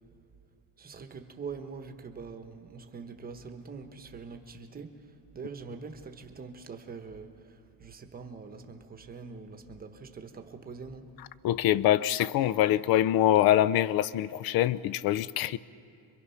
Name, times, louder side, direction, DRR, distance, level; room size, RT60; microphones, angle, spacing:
voice 1, 0.8-11.1, right 5 dB, 20° right, 6 dB, 1.0 m, -44 dB
voice 2, 11.4-15.6, left 12 dB, 50° left, 18 dB, 0.5 m, -24 dB
27.0 x 23.5 x 5.7 m, 2.6 s
cardioid pair, 160°, 48 cm